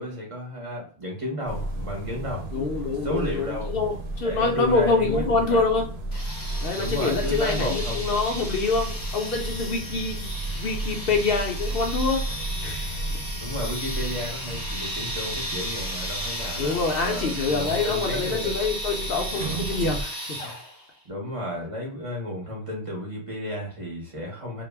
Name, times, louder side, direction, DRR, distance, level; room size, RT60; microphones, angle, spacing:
voice 1, 0.0-2.5 3.0-3.8 4.2-5.6 6.7-8.1 13.4-18.5 21.1-24.6, left 1 dB, 35° right, -2 dB, 0.7 m, -32 dB
sound 1, 1.5-20.0, right 1 dB, 75° right, 0.8 m, -33 dB
voice 2, 2.5-5.9 6.6-12.2 12.6-13.0 16.6-20.5, left 4 dB, 65° left, 2 dB, 0.7 m, -26 dB
sound 2, 6.1-20.9, equal, 25° left, 0.6 m, -35 dB
2.3 x 2.0 x 3.2 m, 0.41 s
omnidirectional pair, 1.1 m